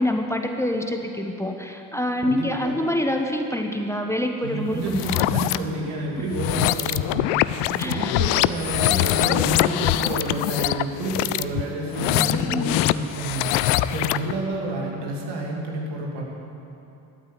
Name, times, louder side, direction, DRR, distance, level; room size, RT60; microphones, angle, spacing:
voice 1, 0.0-5.3 7.8-8.1 12.1-12.8, left 1 dB, 5° left, 3 dB, 1.1 m, -26 dB
voice 2, 2.2-2.7 4.4-7.3 7.7-13.5 13.9-16.2, right 2 dB, 75° right, -1 dB, 2.9 m, -29 dB
sound 1, 4.8-5.6 6.3-14.3, left 15 dB, 90° left, 0.5 m, -23 dB
13.0 x 8.7 x 9.2 m, 2.9 s
supercardioid pair, 80°, 42 cm